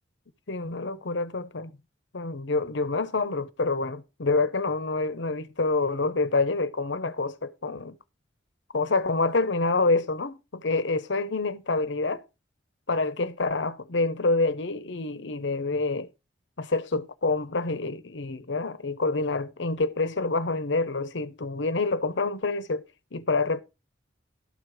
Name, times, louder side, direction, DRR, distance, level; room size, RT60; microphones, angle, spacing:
voice 1, 0.5-1.7 2.1-8.0 8.7-12.2 12.9-16.1 16.6-22.8 23.1-23.6, left 3 dB, 70° left, 0.9 m, -27 dB
12.5 x 4.9 x 6.1 m
head